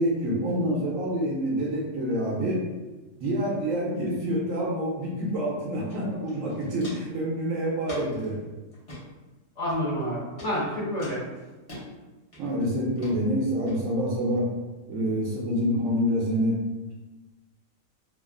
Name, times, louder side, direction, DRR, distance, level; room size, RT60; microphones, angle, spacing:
voice 1, 0.0-2.6 3.2-8.4 12.4-14.5 14.9-16.6, equal, 80° right, -4 dB, 1.0 m, -27 dB
Walk footsteps, 5.9-6.0 6.3-7.2 7.8-8.3 8.7-9.0 9.7-10.0 10.4-10.5 11.0-11.8 12.3-12.6 13.0-13.1 13.7-13.8, left 1 dB, 30° left, 0.8 m, -43 dB
voice 2, 9.6-11.2, equal, 60° left, -10 dB, 1.1 m, -28 dB
2.9 x 2.4 x 2.4 m, 1.2 s
omnidirectional pair, 1.4 m